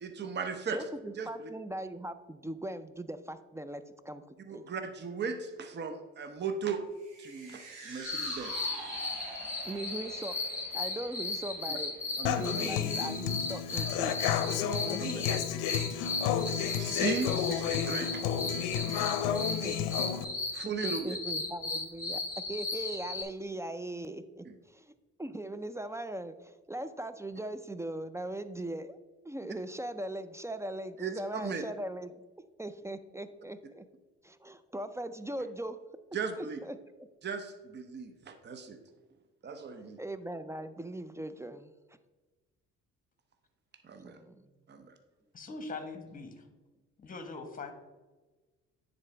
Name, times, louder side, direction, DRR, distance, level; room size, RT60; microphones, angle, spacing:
voice 1, 0.0-0.8 1.2-1.3 4.5-6.8 7.2-8.7 12.2-12.7 15.0-15.2 16.8-18.2 20.5-21.2 24.4-24.5 31.0-31.1 31.4-31.6 36.1-36.6 37.2-38.8 39.4-40.0 43.8-44.2 44.7-45.0, right 5 dB, 35° right, 7 dB, 0.8 m, -37 dB
voice 2, 0.7-4.6 9.6-10.4 10.7-12.0 12.4-14.1 14.4-15.4 19.6-19.8 20.8-22.2 22.5-24.9 25.2-29.0 29.2-32.3 32.6-33.9 34.2-35.8 36.3-37.1 40.0-41.7 44.0-44.5, right 1 dB, 10° right, 12 dB, 0.3 m, -40 dB
sound 1, 7.0-13.4 13.8-13.9, right 3 dB, 70° right, 1.7 m, -47 dB
sound 2, 8.0-23.2, left 3 dB, 10° left, 1.7 m, -36 dB
Human voice / Acoustic guitar, 12.2-20.2, left 9 dB, 70° left, 0.6 m, -31 dB
voice 3, 45.3-46.5 47.0-47.7, left 3 dB, 25° left, 7 dB, 1.2 m, -42 dB
9.6 x 4.1 x 3.3 m, 1.2 s
hypercardioid pair, 60°, 32 cm